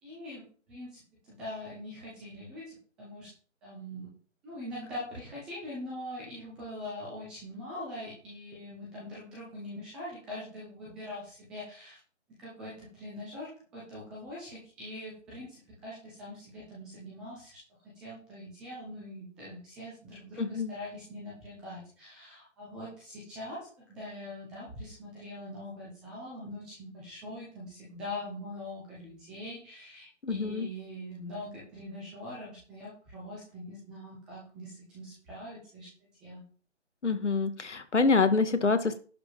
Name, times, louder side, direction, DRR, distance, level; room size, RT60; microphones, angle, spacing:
voice 1, 0.0-3.3 3.6-4.1 4.4-12.0 12.4-17.6 17.8-36.4, left 1 dB, ahead, -6 dB, 0.6 m, -43 dB
voice 2, 20.4-20.8 30.2-30.7 37.0-39.0, left 4 dB, 70° left, 9 dB, 2.1 m, -26 dB
11.0 x 5.0 x 7.1 m, 0.40 s
figure-of-eight pair, 150°, 36 cm